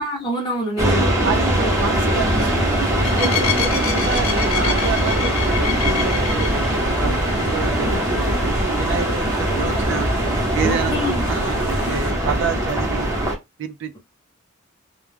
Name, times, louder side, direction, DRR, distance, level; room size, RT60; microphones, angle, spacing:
voice 1, 0.0-1.1 10.6-11.3, equal, 25° left, 0.8 m, -25 dB
sound 1, 0.8-13.4, right 1 dB, 15° right, 0.8 m, -21 dB
voice 2, 1.2-10.1 10.5-13.1 13.6-13.9, right 5 dB, 60° right, 0.4 m, -28 dB
sound 2, 1.3-12.1, left 6 dB, 75° left, 0.6 m, -30 dB
2.3 x 2.1 x 3.2 m
head